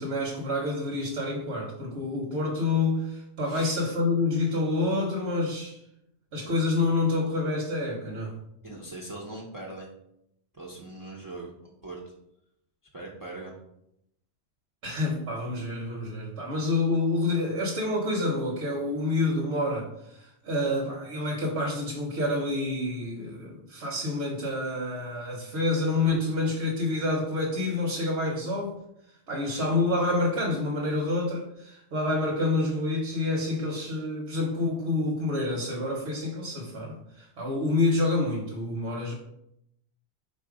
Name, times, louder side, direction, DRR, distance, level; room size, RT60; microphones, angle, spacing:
voice 1, 0.0-5.8 6.3-8.3 14.8-28.8 29.3-39.1, left 2 dB, 75° right, -3 dB, 1.1 m, -28 dB
voice 2, 3.5-3.8 8.6-9.9 10.5-12.1 12.9-13.5, right 2 dB, 25° right, -3 dB, 0.5 m, -41 dB
4.1 x 2.5 x 4.7 m, 0.79 s
omnidirectional pair, 1.1 m